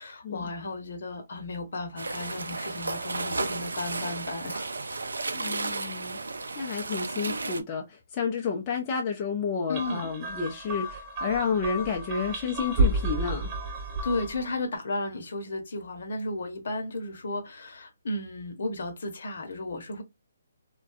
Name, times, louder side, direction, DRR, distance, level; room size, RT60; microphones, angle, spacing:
voice 1, 0.0-4.6 9.7-10.1 14.0-20.0, left 2 dB, 60° left, 0.9 m, -34 dB
sound 1, 2.0-7.6, right 3 dB, 80° right, 0.4 m, -33 dB
voice 2, 5.3-6.2 6.6-13.5, left 5 dB, 30° left, 0.5 m, -30 dB
sound 2, 9.7-14.5, right 2 dB, 30° right, 0.8 m, -30 dB
2.3 x 2.2 x 2.5 m
figure-of-eight pair, 145°, 0 cm